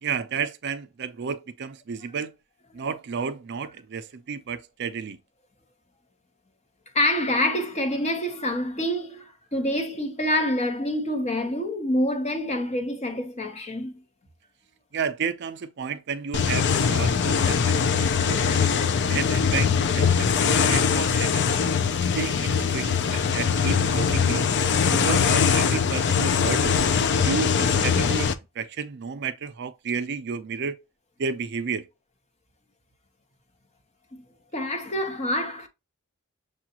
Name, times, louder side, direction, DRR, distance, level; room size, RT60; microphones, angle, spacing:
voice 1, 0.0-2.3 2.7-5.2 14.9-18.7 19.1-21.5 22.1-24.5 25.0-26.8 27.2-28.3 28.6-30.8 31.2-31.8, right 6 dB, 55° right, 0.5 m, -32 dB
voice 2, 6.9-13.9 34.1-34.2 34.5-35.7, left 1 dB, 30° left, 0.9 m, -26 dB
sound 1, 16.3-28.3, left 6 dB, 55° left, 0.4 m, -22 dB
6.7 x 2.4 x 2.9 m
head